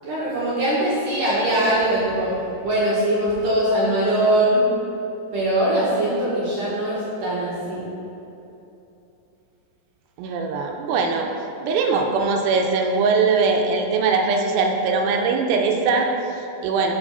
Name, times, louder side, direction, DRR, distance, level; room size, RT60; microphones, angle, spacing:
voice 1, 0.0-2.3 2.6-4.6 5.3-7.8, right 1 dB, 65° right, -8 dB, 2.2 m, -21 dB
voice 2, 10.2-11.3 11.6-16.9, right 4 dB, 80° right, 2 dB, 2.7 m, -21 dB
6.2 x 5.9 x 5.3 m, 2.9 s
omnidirectional pair, 5.0 m